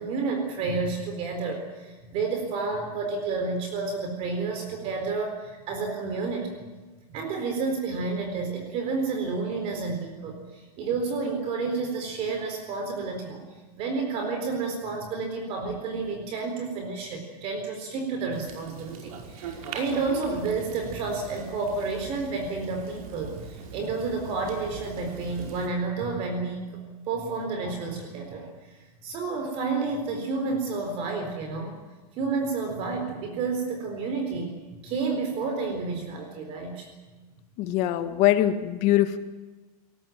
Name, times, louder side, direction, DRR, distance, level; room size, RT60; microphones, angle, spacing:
voice 1, 0.0-6.6 7.1-13.4 13.8-26.7 27.1-28.7 29.0-31.8 32.2-36.9, right 4 dB, 30° right, 4 dB, 4.1 m, -30 dB
sound 1, 18.3-25.7, right 5 dB, 65° right, 5.2 m, -41 dB
voice 2, 37.6-39.2, left 13 dB, 35° left, 10 dB, 1.7 m, -22 dB
21.5 x 19.0 x 9.1 m, 1.2 s
supercardioid pair, 170°, 19 cm